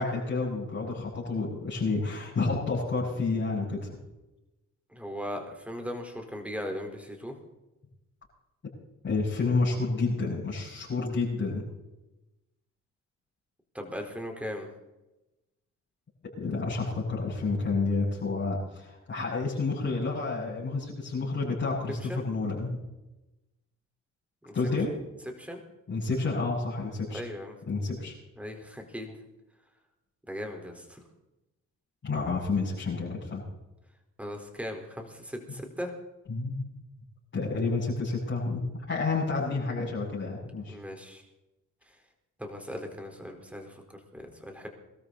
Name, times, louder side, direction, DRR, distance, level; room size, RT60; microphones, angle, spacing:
voice 1, 0.0-3.9 9.0-11.7 16.4-22.7 24.5-24.9 25.9-27.2 27.7-28.1 32.0-33.4 36.3-36.7 37.3-40.8, left 3 dB, 40° left, -7 dB, 7.4 m, -30 dB
voice 2, 4.9-7.3 13.7-14.7 22.1-22.2 24.4-24.5 25.4-25.6 27.1-27.6 28.4-29.2 30.3-31.0 34.2-35.9 40.7-41.2 41.9-42.0 42.4-44.7, equal, 5° right, 3 dB, 4.2 m, -38 dB
22.5 x 13.5 x 4.1 m, 0.99 s
cardioid pair, 90°, 30 cm